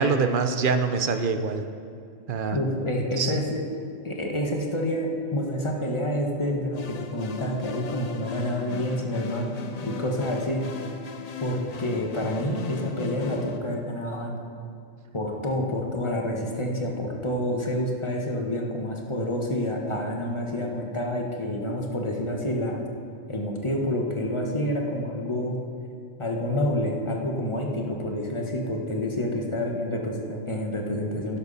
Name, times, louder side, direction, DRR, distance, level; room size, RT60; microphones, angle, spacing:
voice 1, 0.0-1.6 2.3-2.6 3.2-3.3, right 5 dB, 50° right, 8 dB, 0.8 m, -24 dB
voice 2, 2.5-3.6 4.0-9.5 9.8-10.6 11.4-14.4 15.1-22.8 23.3-25.6 26.2-31.4, left 1 dB, 25° left, 0 dB, 1.2 m, -28 dB
sound 1, 6.7-13.6, left 5 dB, 45° left, 0.6 m, -38 dB
11.5 x 11.0 x 4.1 m, 2.5 s
omnidirectional pair, 1.3 m